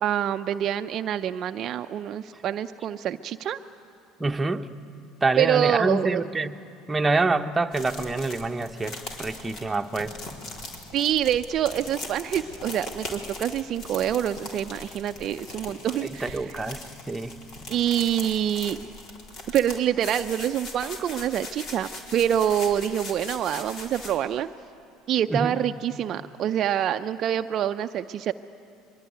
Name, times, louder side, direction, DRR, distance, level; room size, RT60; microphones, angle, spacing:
voice 1, 0.0-3.6 5.4-6.2 10.9-16.6 17.7-18.8 19.5-24.5 25.1-28.3, right 10 dB, 50° right, 8 dB, 0.6 m, -26 dB
voice 2, 4.2-4.7 5.2-6.5 6.9-10.1 16.0-17.4 25.3-25.6, right 3 dB, 15° right, 5 dB, 1.1 m, -26 dB
sound 1, 7.7-24.2, left 2 dB, 55° left, 4.1 m, -40 dB
23.0 x 22.5 x 9.4 m, 2.6 s
hypercardioid pair, 70°, 0 cm